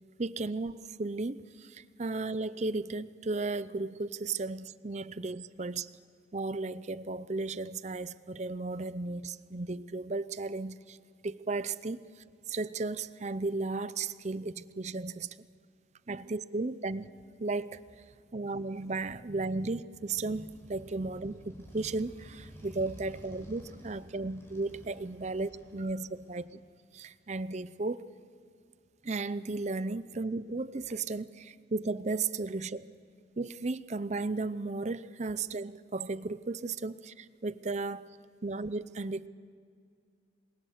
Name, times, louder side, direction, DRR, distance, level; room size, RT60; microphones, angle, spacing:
voice 1, 0.2-5.9 6.3-11.0 11.2-12.1 12.5-15.4 16.1-17.1 17.4-17.8 18.3-26.5 26.9-28.1 29.0-32.9 33.4-38.1 38.4-39.3, right 3 dB, 35° right, 15 dB, 0.6 m, -35 dB
Motorcycle, 19.8-26.5, equal, 15° left, 4.3 m, -52 dB
27.5 x 22.0 x 6.6 m, 2.2 s
head